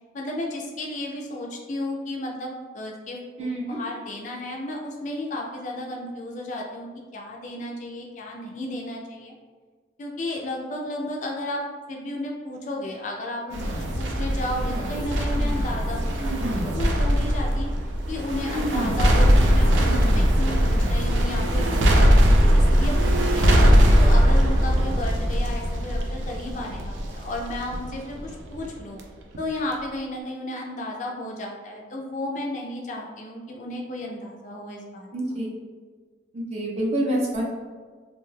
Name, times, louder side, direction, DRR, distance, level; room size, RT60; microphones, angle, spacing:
voice 1, 0.1-9.3 10.0-11.6 11.9-17.7 18.1-23.6 24.0-29.0 29.4-35.1, left 1 dB, 40° left, 0 dB, 0.3 m, -33 dB
sound 1, 13.5-29.0 29.3-29.4, equal, 90° right, 0.4 m, -20 dB
voice 2, 35.1-35.5 36.3-37.4, right 1 dB, 35° right, -3 dB, 0.5 m, -26 dB
2.6 x 2.2 x 3.1 m, 1.5 s
head